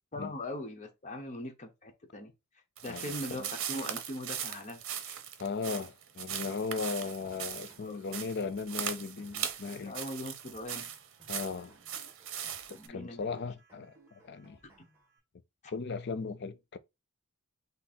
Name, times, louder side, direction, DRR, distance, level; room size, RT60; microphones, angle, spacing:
voice 1, 0.1-2.3 2.8-5.2 7.8-8.0 9.7-10.9 12.7-13.4, left 1 dB, 35° left, 0.9 m, -41 dB
sound 1, 2.8-12.9, right 9 dB, 65° right, 0.8 m, -39 dB
voice 2, 2.9-3.5 5.4-9.9 11.3-11.8 12.9-13.9 14.2-14.6 15.7-16.8, left 4 dB, 55° left, 0.5 m, -37 dB
sound 2, 7.2-15.2, right 1 dB, 10° right, 2.2 m, -62 dB
6.0 x 2.0 x 4.2 m
head